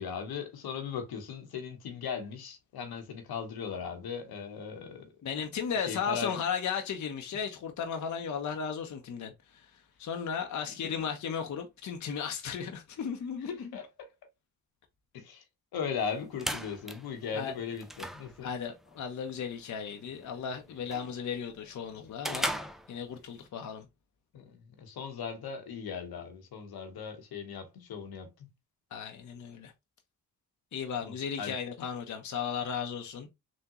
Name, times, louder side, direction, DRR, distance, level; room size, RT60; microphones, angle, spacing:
voice 1, 0.0-5.1 5.9-6.3 10.7-10.9 13.5-14.1 15.1-15.4 15.7-18.5 24.3-28.3 31.0-31.6, left 6 dB, 75° left, 1.0 m, -38 dB
voice 2, 5.2-13.7 17.3-17.5 18.4-22.6 22.9-23.9 28.9-29.7 30.7-33.3, left 7 dB, 50° left, 0.7 m, -35 dB
sound 1, 16.0-23.5, equal, ahead, 0.5 m, -40 dB
3.5 x 2.2 x 2.9 m
supercardioid pair, 50°, 38 cm